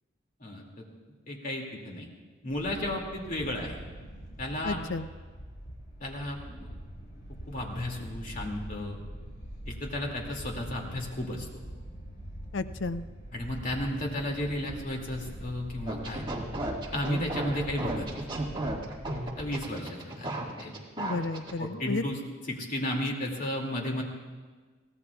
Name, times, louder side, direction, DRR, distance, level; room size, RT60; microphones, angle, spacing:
voice 1, 0.4-0.8 1.3-2.1 2.4-3.8 4.4-4.8 6.0-6.7 7.5-9.0 9.7-11.5 13.3-16.2 16.9-18.3 19.4-20.3 20.6-20.7 21.6-22.2 22.5-24.0, left 1 dB, 50° left, 0 dB, 2.4 m, -33 dB
sound 1, 2.5-19.6, equal, 65° left, 4.8 m, -44 dB
voice 2, 4.6-5.1 12.5-13.1 21.0-22.0, left 3 dB, 85° left, 11 dB, 0.6 m, -32 dB
sound 2, 15.9-21.5, right 1 dB, 25° right, 1.8 m, -34 dB
23.0 x 17.0 x 2.4 m, 1.4 s
head